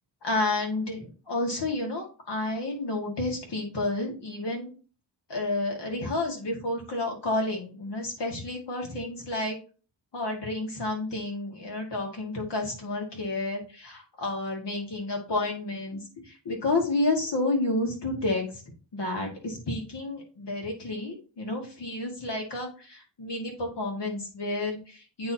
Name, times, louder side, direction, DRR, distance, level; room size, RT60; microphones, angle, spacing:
voice 1, 0.2-4.7 5.3-9.6 10.1-18.6 18.9-25.3, left 2 dB, 65° left, 1 dB, 2.1 m, -30 dB
8.4 x 4.3 x 2.9 m, 0.36 s
wide cardioid pair, 85°, 44 cm